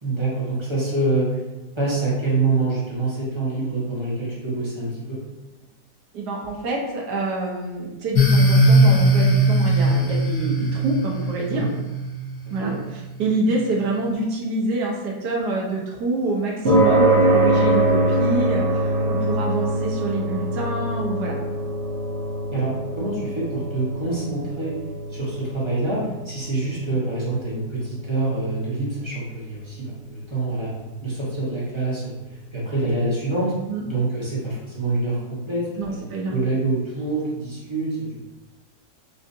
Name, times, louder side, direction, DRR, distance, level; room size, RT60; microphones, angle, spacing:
voice 1, 0.0-1.3 1.7-5.2 11.5-11.7 12.6-12.8 22.5-24.8 25.1-30.7 31.0-32.1 32.5-33.5 33.8-38.2, right 2 dB, 20° right, -7 dB, 0.9 m, -26 dB
voice 2, 6.1-11.7 12.5-21.4 33.7-33.8 35.8-36.3, right 2 dB, 90° right, -1 dB, 1.4 m, -26 dB
sound 1, 8.1-12.7, right 1 dB, 70° left, 1.1 m, -19 dB
sound 2, 16.6-33.2, right 1 dB, 45° right, 1.3 m, -25 dB
5.6 x 2.5 x 2.6 m, 1.1 s
omnidirectional pair, 1.7 m